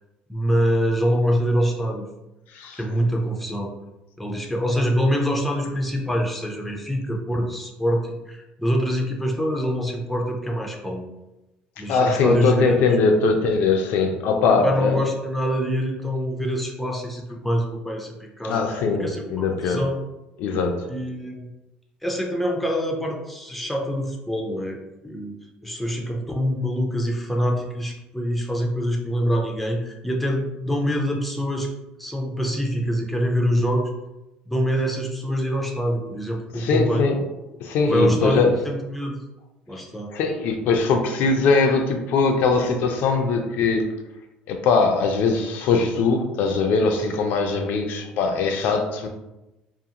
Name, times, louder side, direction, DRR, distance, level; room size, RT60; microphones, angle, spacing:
voice 1, 0.3-2.1 2.8-3.7 4.2-11.0 11.8-12.8 14.5-18.6 19.0-20.0 20.9-21.5 22.0-24.8 25.0-25.3 25.6-31.7 32.0-33.9 34.5-37.1 37.8-39.1 39.7-40.1, equal, ahead, 0 dB, 0.4 m, -25 dB
voice 2, 11.9-15.0 18.4-19.8 20.4-20.9 36.5-37.2 37.6-38.5 40.1-43.9 44.5-49.1, left 4 dB, 70° left, 4 dB, 0.4 m, -21 dB
2.4 x 2.4 x 2.8 m, 0.97 s
cardioid pair, 125°, 3 cm